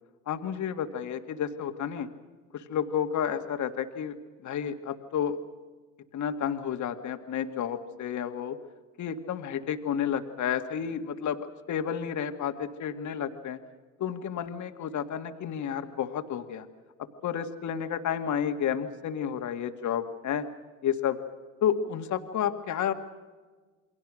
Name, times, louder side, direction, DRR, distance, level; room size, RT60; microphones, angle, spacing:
voice 1, 0.3-2.1 2.5-4.1 4.4-5.4 6.1-8.6 9.0-13.6 14.0-16.7 17.0-20.5 20.8-21.2 21.6-22.9, left 8 dB, 45° left, 7 dB, 2.1 m, -31 dB
28.5 x 22.5 x 6.4 m, 1.4 s
hypercardioid pair, 80°, 39 cm